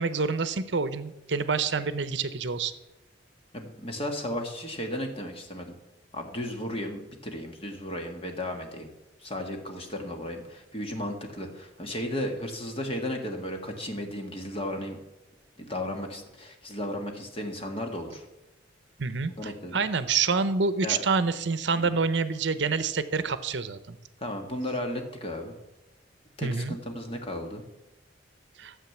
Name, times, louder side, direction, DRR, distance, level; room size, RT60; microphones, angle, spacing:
voice 1, 0.0-2.7 19.0-24.0 26.4-26.8 28.6-28.7, right 4 dB, 70° right, 13 dB, 0.7 m, -27 dB
voice 2, 3.5-5.7 6.1-8.9 9.2-15.0 15.6-18.3 19.3-19.8 20.8-21.0 21.8-21.9 24.2-25.5 26.4-27.6, left 1 dB, 30° left, 3 dB, 1.8 m, -34 dB
12.5 x 7.5 x 7.3 m, 0.96 s
head